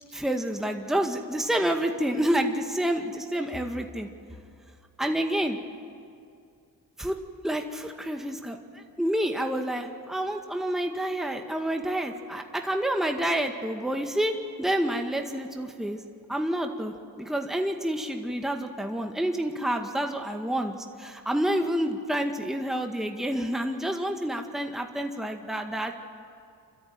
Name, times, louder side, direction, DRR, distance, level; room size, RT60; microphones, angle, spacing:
voice 1, 0.1-4.1 5.0-5.6 7.0-7.2 7.4-16.0 16.3-26.0, right 1 dB, ahead, 4 dB, 2.0 m, -28 dB
26.5 x 13.5 x 9.3 m, 2.4 s
supercardioid pair, 50°, 42 cm